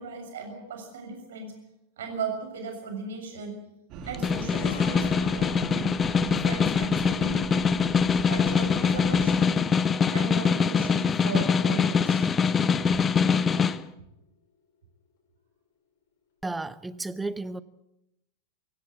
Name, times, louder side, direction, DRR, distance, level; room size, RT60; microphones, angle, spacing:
voice 1, 0.0-1.5 2.0-3.6 4.0-7.7 8.3-9.6 10.1-12.3 12.8-13.0, right 5 dB, 60° right, 4 dB, 6.8 m, -37 dB
sound 1, 3.9-9.4, right 7 dB, 40° right, 3.0 m, -40 dB
Snare drum, 4.0-13.8, left 6 dB, 20° left, 0.9 m, -24 dB
sound 2, 4.4-12.9 13.2-13.4, left 5 dB, 50° left, 6.5 m, -48 dB
voice 2, 16.4-17.6, right 2 dB, 10° right, 17 dB, 0.9 m, -33 dB
24.0 x 16.0 x 8.5 m, 0.88 s
figure-of-eight pair, 90°, 0 cm